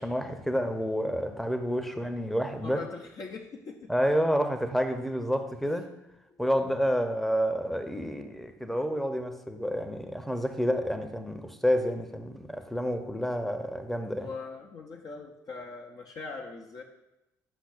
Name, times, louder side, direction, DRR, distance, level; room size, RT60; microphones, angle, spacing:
voice 1, 0.0-2.8 3.9-5.9 6.4-14.3, equal, ahead, 0.7 m, -29 dB
voice 2, 2.6-3.9 6.3-6.4 14.2-16.8, left 4 dB, 45° left, 0.6 m, -41 dB
9.7 x 5.9 x 2.5 m
figure-of-eight pair, 50°, 9 cm